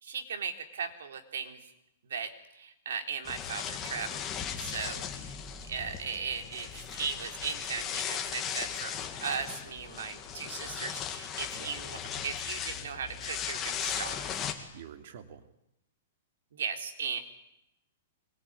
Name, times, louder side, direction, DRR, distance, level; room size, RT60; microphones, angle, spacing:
voice 1, 0.0-1.7 2.1-4.3 4.6-5.4 5.7-8.9 9.2-14.4 16.5-17.2, right 6 dB, 85° right, 5 dB, 3.9 m, -37 dB
sound 1, 3.2-14.5, left 8 dB, 15° left, 2.0 m, -37 dB
sound 2, 6.3-14.3, left 8 dB, 50° left, 2.8 m, -55 dB
voice 2, 14.7-15.5, right 9 dB, 50° right, 7 dB, 2.8 m, -47 dB
25.0 x 22.5 x 9.8 m, 0.83 s
hypercardioid pair, 180°, 0 cm